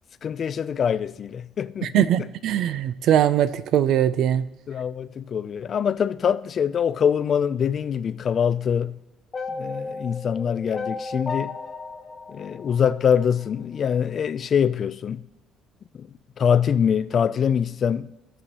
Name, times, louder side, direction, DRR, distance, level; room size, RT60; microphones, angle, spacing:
voice 1, 0.2-2.3 4.7-9.0 9.5-11.6 12.3-15.2 16.0-16.1 16.4-18.1, left 7 dB, 40° left, 0.3 m, -24 dB
voice 2, 1.8-4.5, right 10 dB, 65° right, 0.4 m, -21 dB
sound 1, 9.3-13.5, left 4 dB, 25° left, 0.8 m, -34 dB
16.0 x 6.2 x 2.9 m
cardioid pair, 130°, 0 cm